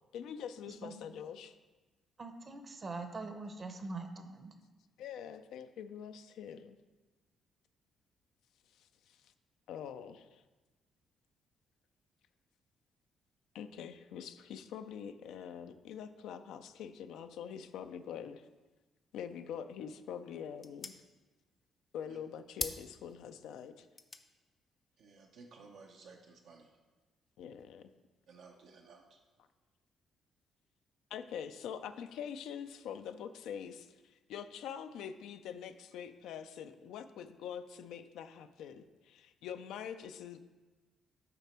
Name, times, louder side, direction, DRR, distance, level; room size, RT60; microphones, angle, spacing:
voice 1, 0.1-1.5 5.0-6.8 8.8-9.3 9.7-10.4 13.5-18.5 19.1-21.0 21.9-23.9 27.4-27.9 31.1-40.4, left 8 dB, 85° left, 9 dB, 0.4 m, -45 dB
voice 2, 2.2-4.5, right 3 dB, 35° right, 7 dB, 0.7 m, -43 dB
sound 1, 19.6-26.4, left 3 dB, 30° left, 0.5 m, -48 dB
voice 3, 25.0-26.7 28.3-29.0, right 4 dB, 80° right, 1 dB, 0.6 m, -56 dB
6.8 x 4.1 x 4.3 m, 1.2 s
cardioid pair, 90°, 0 cm